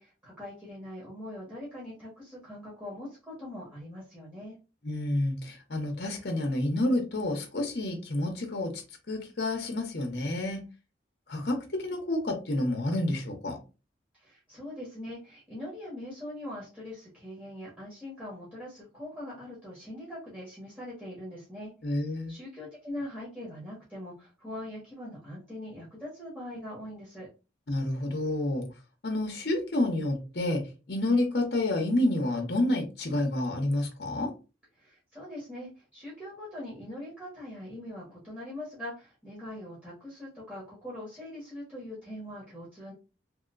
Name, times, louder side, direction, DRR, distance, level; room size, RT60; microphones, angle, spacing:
voice 1, 0.0-4.6 14.1-21.7 22.0-27.3 34.8-42.9, left 1 dB, 10° right, 1.1 m, -42 dB
voice 2, 4.8-8.7 9.1-10.6 11.3-13.6 21.8-22.3 27.7-28.6 29.0-30.6 30.9-34.3, left 1 dB, 60° left, 0.8 m, -29 dB
3.1 x 2.8 x 2.4 m
head